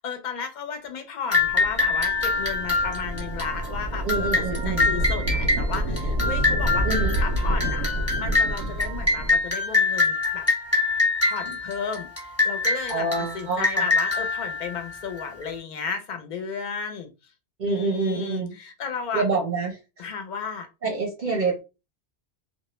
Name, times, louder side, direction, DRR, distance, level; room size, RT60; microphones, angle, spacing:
voice 1, 0.0-7.9 8.2-10.5 11.2-17.1 17.7-19.2 20.0-20.7, left 6 dB, 55° left, 0.6 m, -34 dB
sound 1, 1.3-15.4, left 3 dB, 15° left, 0.8 m, -25 dB
sound 2, 1.4-9.4, equal, 80° right, 0.9 m, -28 dB
voice 2, 4.0-5.0 6.8-7.2 12.9-13.8 17.6-18.5 19.1-19.8 20.8-21.6, right 3 dB, 50° right, 0.6 m, -26 dB
2.2 x 2.0 x 3.0 m
omnidirectional pair, 1.2 m